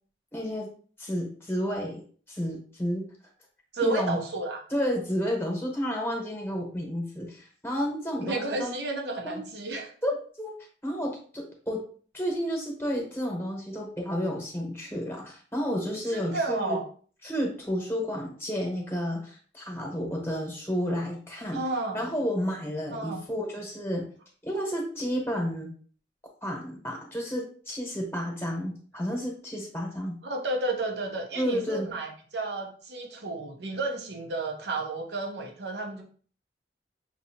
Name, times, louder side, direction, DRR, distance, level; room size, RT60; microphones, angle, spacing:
voice 1, 0.3-0.7 1.0-2.0 2.3-3.1 3.8-4.2 4.7-8.8 9.2-9.4 10.0-10.1 10.4-10.5 10.8-11.8 12.1-16.8 17.2-21.6 21.9-24.0 24.4-25.7 26.4-30.2 31.3-31.9, equal, 15° left, 0 dB, 1.0 m, -31 dB
voice 2, 3.7-4.6 8.2-9.9 16.1-16.8 21.5-22.0 22.9-23.2 30.2-36.0, right 3 dB, 75° right, 2 dB, 0.8 m, -32 dB
5.9 x 2.7 x 2.8 m, 0.44 s
head